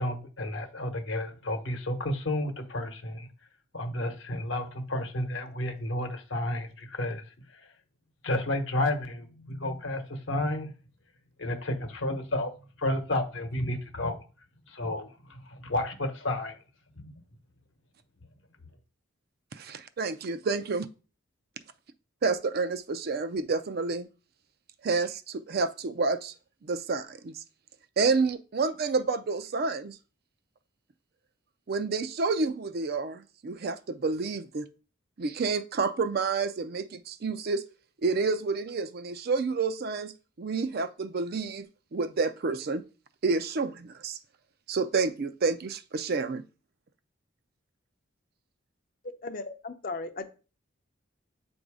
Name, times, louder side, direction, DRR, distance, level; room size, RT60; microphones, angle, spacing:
voice 1, 0.0-3.3 3.7-7.7 8.2-10.7 11.4-12.5 12.8-14.2 14.7-16.6 17.0-17.1, left 1 dB, 65° left, 0.9 m, -31 dB
voice 2, 19.5-20.9 22.2-24.1 24.8-26.3 26.6-27.4 28.0-30.0 31.7-34.6 35.2-37.6 38.0-42.8 43.2-44.2 44.7-46.4, right 4 dB, 50° right, 0.4 m, -29 dB
voice 3, 49.2-50.2, left 3 dB, 45° left, 0.6 m, -36 dB
7.8 x 2.6 x 4.8 m
head